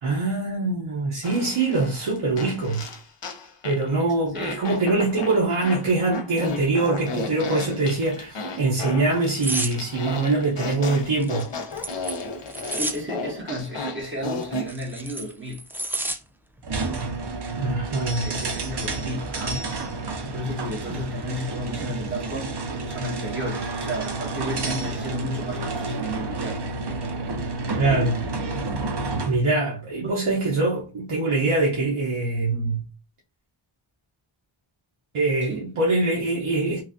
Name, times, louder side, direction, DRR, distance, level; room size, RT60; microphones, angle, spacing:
voice 1, 0.0-2.9 3.6-11.5 17.6-18.3 27.8-28.3 29.2-32.9 35.1-36.8, right 2 dB, 80° right, 0.9 m, -23 dB
Fart, 1.2-3.9 4.3-14.7, left 2 dB, 65° left, 0.7 m, -34 dB
voice 2, 4.3-4.6 12.7-15.6 18.2-19.7 20.3-22.5 22.9-26.6 30.0-30.1 35.4-35.6, equal, 25° right, 1.3 m, -32 dB
sound 1, 9.4-9.7 11.2-13.0 14.4-16.2 16.6-16.8, right 1 dB, 5° right, 0.3 m, -30 dB
sound 2, 16.6-29.4, right 3 dB, 55° right, 0.7 m, -30 dB
3.0 x 2.4 x 2.6 m
wide cardioid pair, 65°, 48 cm